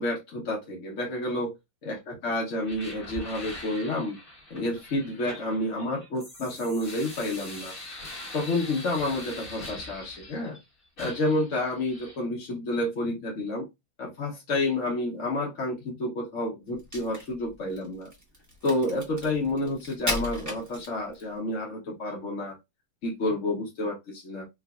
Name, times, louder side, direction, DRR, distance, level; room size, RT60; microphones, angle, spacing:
voice 1, 0.0-1.5 1.8-4.2 4.5-7.7 8.3-10.6 11.0-13.6 14.0-18.1 18.6-22.6 23.0-24.4, left 1 dB, 50° left, -2 dB, 1.1 m, -29 dB
sound 1, 2.6-10.6 11.0-12.2, left 2 dB, 30° left, 1.8 m, -43 dB
Crack, 16.7-21.3, left 1 dB, 15° right, 0.8 m, -36 dB
4.9 x 2.6 x 2.3 m, 0.21 s
omnidirectional pair, 2.2 m